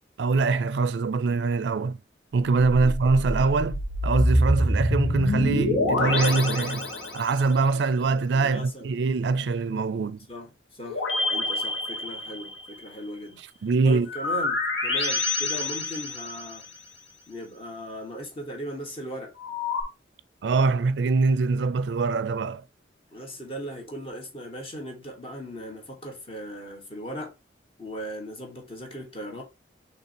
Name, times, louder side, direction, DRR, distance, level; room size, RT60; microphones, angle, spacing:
voice 1, 0.2-2.0 2.3-6.9 7.1-10.2 13.6-14.1 20.4-22.6, right 4 dB, 70° right, 0.4 m, -23 dB
sound 1, 3.0-7.5 10.9-12.7 14.1-16.7 19.4-19.8, left 1 dB, 85° left, 1.7 m, -26 dB
voice 2, 8.0-8.9 10.3-13.4 13.8-16.6 17.3-19.3 23.1-27.3 27.8-29.4, equal, 30° left, 1.3 m, -38 dB
5.8 x 3.2 x 2.9 m
head